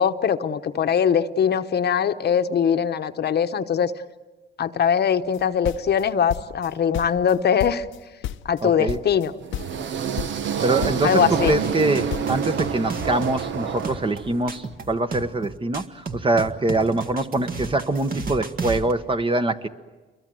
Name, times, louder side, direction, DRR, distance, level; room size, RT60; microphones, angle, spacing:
voice 1, 0.0-3.9 4.6-7.8 8.4-9.3 11.0-11.5, left 7 dB, 55° left, 9 dB, 1.0 m, -21 dB
sound 1, 5.3-6.7 6.9-8.0 8.2-8.6 8.9-9.3 9.5-9.9 10.2-10.6 10.8-12.4, left 11 dB, 80° left, 0.8 m, -32 dB
voice 2, 8.6-9.0 10.6-19.7, right 2 dB, 25° right, 9 dB, 1.2 m, -24 dB
sound 2, 9.4-14.6, right 7 dB, 70° right, 1.1 m, -28 dB
sound 3, 11.3-18.9, right 4 dB, 45° right, 1.9 m, -33 dB
28.5 x 23.0 x 7.8 m, 1.2 s
cardioid pair, 90°, 20 cm